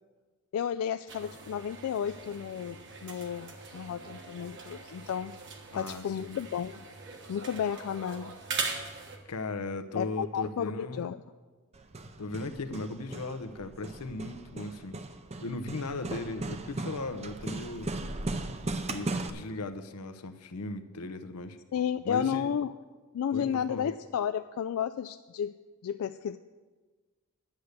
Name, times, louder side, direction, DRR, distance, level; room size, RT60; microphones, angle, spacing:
voice 1, 0.5-5.3 5.7-6.8 7.3-8.4 9.9-11.2 21.7-22.7 23.1-25.6 25.8-26.4, left 8 dB, 65° left, 11 dB, 0.3 m, -32 dB
sound 1, 1.1-9.2, right 4 dB, 55° right, 1.3 m, -41 dB
voice 2, 5.7-6.4 9.3-11.1 12.2-15.0 15.4-17.9 18.9-21.6 22.0-22.5 23.3-23.9, left 2 dB, 90° left, 9 dB, 0.8 m, -37 dB
Hammer, 11.7-19.3, right 2 dB, 30° right, 0.6 m, -37 dB
10.5 x 8.2 x 6.6 m, 1.3 s
head